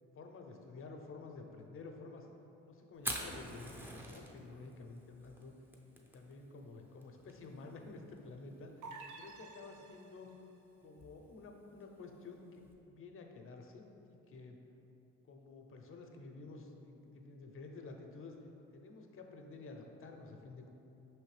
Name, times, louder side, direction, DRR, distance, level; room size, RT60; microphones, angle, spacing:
voice 1, 0.1-2.3 2.7-5.5 6.0-8.7 9.1-10.3 10.8-14.6 15.2-18.4 18.7-20.7, left 3 dB, 45° left, 3 dB, 0.6 m, -51 dB
Fire, 2.9-12.7, equal, 5° right, 0.5 m, -48 dB
sound 1, 8.8-10.4, right 3 dB, 75° right, 0.5 m, -51 dB
5.2 x 3.2 x 3.2 m, 2.9 s
cardioid pair, 90°, 30 cm